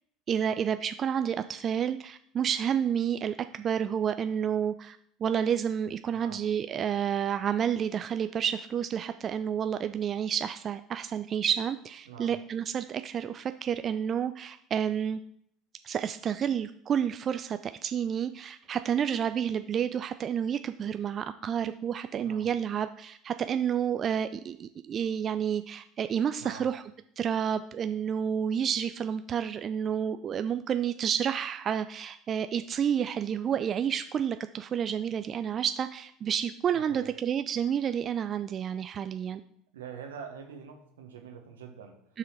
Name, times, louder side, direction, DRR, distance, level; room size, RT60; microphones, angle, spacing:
voice 1, 0.3-15.2 15.8-26.8 27.2-39.4 42.1-42.2, right 8 dB, 40° right, 10 dB, 0.3 m, -30 dB
voice 2, 6.1-6.5 12.0-12.4 22.2-22.5 26.4-26.7 36.7-37.1 39.7-42.0, right 7 dB, 80° right, 4 dB, 1.2 m, -45 dB
6.1 x 4.8 x 5.9 m, 0.68 s
hypercardioid pair, 70°, 0 cm